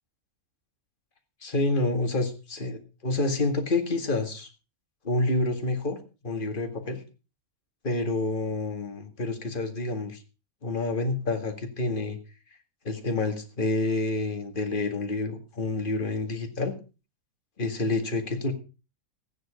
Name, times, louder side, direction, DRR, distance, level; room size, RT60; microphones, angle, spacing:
voice 1, 1.4-4.5 5.0-6.0 6.2-7.0 7.8-10.2 10.6-12.2 12.8-16.7 17.6-18.5, left 2 dB, 35° left, 5 dB, 2.2 m, -28 dB
15.5 x 9.5 x 5.0 m, 0.33 s
omnidirectional pair, 1.5 m